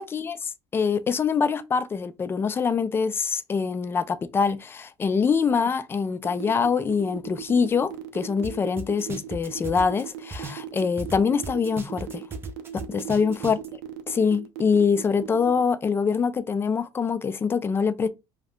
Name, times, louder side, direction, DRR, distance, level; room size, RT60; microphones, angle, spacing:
voice 1, 0.0-12.2 12.7-13.6 14.1-18.1, left 5 dB, 25° left, 0.4 m, -24 dB
sound 1, 6.2-15.6, right 13 dB, 80° right, 0.5 m, -38 dB
sound 2, 8.4-8.5 8.8-11.2 11.4-13.7, right 3 dB, 25° right, 0.6 m, -36 dB
2.6 x 2.3 x 3.4 m
supercardioid pair, 105°, 10 cm